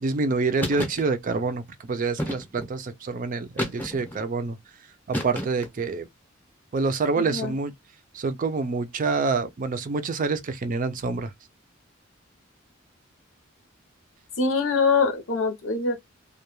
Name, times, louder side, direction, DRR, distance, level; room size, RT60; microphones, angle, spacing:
voice 1, 0.0-4.6 5.1-6.0 6.7-7.7 8.1-11.3, right 4 dB, 40° right, 0.4 m, -27 dB
sound 1, 0.6-1.0 2.2-2.7 3.6-4.2 5.1-5.8, equal, 10° left, 0.7 m, -30 dB
voice 2, 7.1-7.6 14.4-16.0, left 4 dB, 80° left, 0.7 m, -24 dB
2.2 x 2.2 x 3.0 m
head